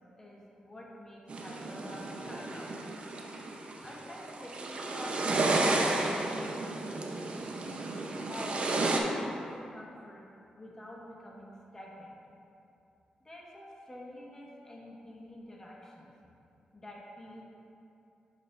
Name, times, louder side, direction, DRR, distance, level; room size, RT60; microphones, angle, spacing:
voice 1, 0.2-2.7 3.8-7.6 8.3-10.2 10.5-12.1 13.2-16.1 16.7-17.4, left 1 dB, 20° left, -4 dB, 1.2 m, -46 dB
sound 1, 1.3-9.0, right 2 dB, 45° right, 0.6 m, -32 dB
8.4 x 5.2 x 2.5 m, 2.7 s
cardioid pair, 100°, 3 cm